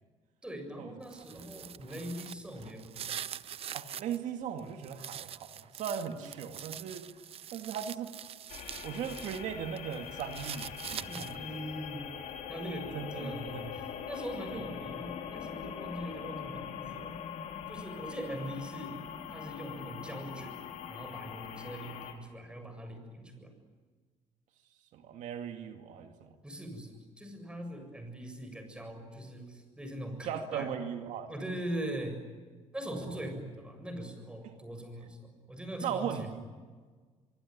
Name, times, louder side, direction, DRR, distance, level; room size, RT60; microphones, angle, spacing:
voice 1, 0.4-3.2 6.1-6.3 11.1-12.1 12.5-17.2 17.7-19.0 19.3-20.6 20.9-23.5 26.4-30.7 31.3-32.2 32.7-36.4, right 1 dB, 10° right, 6 dB, 7.3 m, -41 dB
sound 1, 1.0-4.2 4.6-9.4 9.8-11.5, right 9 dB, 50° right, 0.7 m, -44 dB
voice 2, 3.7-5.5 5.7-7.0 7.5-8.1 8.8-11.3 12.9-13.7 24.9-26.3 30.2-31.3 32.9-33.0 34.4-34.5 35.8-36.4, right 8 dB, 80° right, 6 dB, 2.2 m, -38 dB
sound 2, 8.5-22.1, left 8 dB, 80° left, 4.0 m, -42 dB
24.5 x 24.5 x 9.7 m, 1.4 s
cardioid pair, 105°, 12 cm